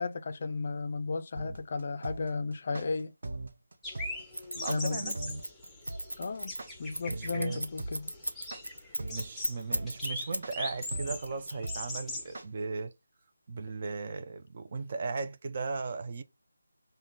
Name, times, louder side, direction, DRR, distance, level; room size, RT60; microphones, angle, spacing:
voice 1, 0.0-3.1 4.7-5.1 6.2-6.5 6.8-8.1, left 4 dB, 40° left, 0.4 m, -34 dB
sound 1, 1.3-12.4, right 2 dB, 55° right, 0.8 m, -39 dB
sound 2, 3.8-12.4, left 2 dB, 5° left, 0.7 m, -41 dB
Scissors, 4.3-10.5 10.8-12.1, right 1 dB, 90° right, 0.8 m, -36 dB
voice 2, 4.5-5.2 7.1-7.6 9.1-12.9 13.5-16.2, right 4 dB, 35° right, 0.4 m, -37 dB
4.9 x 2.2 x 3.6 m
figure-of-eight pair, 160°, 0 cm